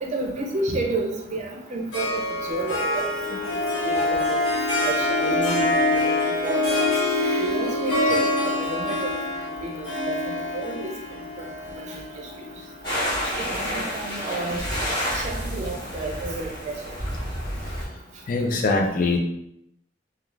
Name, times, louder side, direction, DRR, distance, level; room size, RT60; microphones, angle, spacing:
voice 1, 0.0-2.2 2.5-3.4 3.8-4.4 4.8-5.8 6.1-6.9 7.2-9.0 9.6-10.9 13.4-14.6 15.1-16.7, right 2 dB, 40° right, 1 dB, 0.5 m, -31 dB
Harp, 1.9-13.3, left 2 dB, 80° left, 1.2 m, -25 dB
sound 1, 12.8-17.9, equal, 25° left, 0.9 m, -29 dB
voice 2, 18.3-19.2, left 3 dB, 45° left, 2 dB, 0.4 m, -22 dB
2.3 x 2.3 x 3.1 m, 0.79 s
head